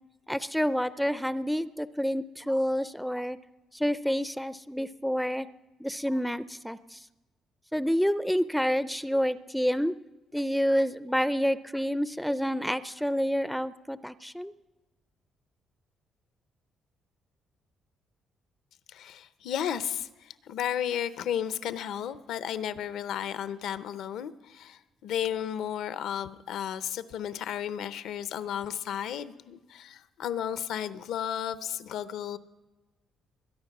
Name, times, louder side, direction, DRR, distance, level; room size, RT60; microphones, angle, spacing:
voice 1, 0.3-3.4 3.7-5.5 5.8-7.0 7.7-9.9 10.3-14.5, equal, ahead, 15 dB, 0.4 m, -28 dB
voice 2, 18.9-32.4, left 9 dB, 80° left, 13 dB, 0.7 m, -33 dB
22.0 x 9.8 x 6.0 m, 1.2 s
cardioid pair, 95°, 0 cm